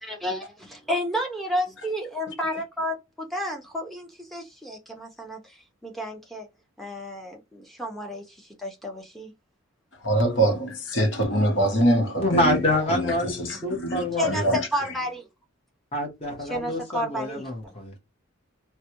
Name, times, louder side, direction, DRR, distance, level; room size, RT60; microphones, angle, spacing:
voice 1, 0.0-6.5 6.8-9.3 14.1-15.3 16.4-17.8, equal, ahead, 0.7 m, -31 dB
voice 2, 10.0-12.6 12.9-14.7, right 1 dB, 60° left, 1.0 m, -24 dB
voice 3, 12.2-13.3 13.6-14.3 15.9-18.0, left 1 dB, 30° left, 1.2 m, -26 dB
3.3 x 2.2 x 2.9 m
head